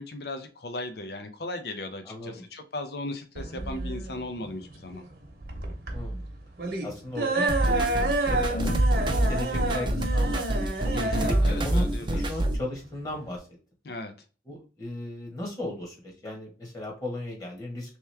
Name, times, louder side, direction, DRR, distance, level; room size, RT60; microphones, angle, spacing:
voice 1, 0.0-5.0 10.9-12.4 13.8-14.1, left 2 dB, 60° left, 7 dB, 0.6 m, -37 dB
voice 2, 2.0-2.4 5.9-6.2 6.8-8.8 9.1-10.8 11.3-13.5 14.5-18.0, left 1 dB, 20° left, -1 dB, 1.2 m, -36 dB
sound 1, 3.4-13.4, right 2 dB, 55° right, 0.9 m, -30 dB
sound 2, 7.5-12.6, right 1 dB, 25° right, 0.5 m, -26 dB
3.4 x 3.0 x 3.2 m, 0.35 s
head